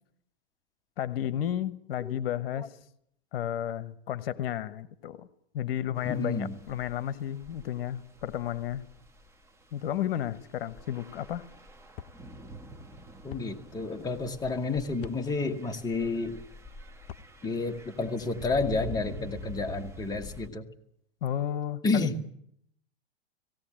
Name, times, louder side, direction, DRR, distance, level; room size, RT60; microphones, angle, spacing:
voice 1, 1.0-2.7 3.3-5.3 5.5-8.8 9.7-11.5 21.2-22.1, left 11 dB, 65° left, 14 dB, 1.2 m, -32 dB
voice 2, 6.0-6.6 13.2-16.4 17.4-20.6 21.8-22.2, left 3 dB, 10° left, 4 dB, 1.5 m, -30 dB
sound 1, 6.0-20.5, left 1 dB, 10° right, 1.7 m, -46 dB
sound 2, 11.9-12.2 13.3-13.5 15.0-15.2 17.0-17.3, left 10 dB, 45° left, 0.8 m, -43 dB
17.5 x 17.5 x 8.8 m, 0.73 s
hypercardioid pair, 130°, 32 cm